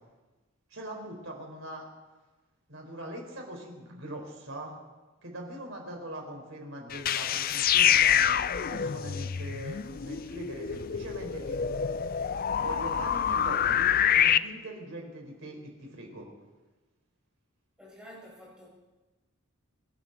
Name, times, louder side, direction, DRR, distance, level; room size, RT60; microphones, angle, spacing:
voice 1, 0.7-1.9 2.7-4.8 5.2-11.6 12.5-16.3, right 1 dB, 65° right, 1 dB, 4.4 m, -41 dB
sound 1, 6.9-14.4, left 9 dB, 45° left, 0.4 m, -26 dB
voice 2, 17.8-18.7, equal, 5° right, -6 dB, 6.5 m, -49 dB
27.0 x 12.0 x 4.1 m, 1.2 s
head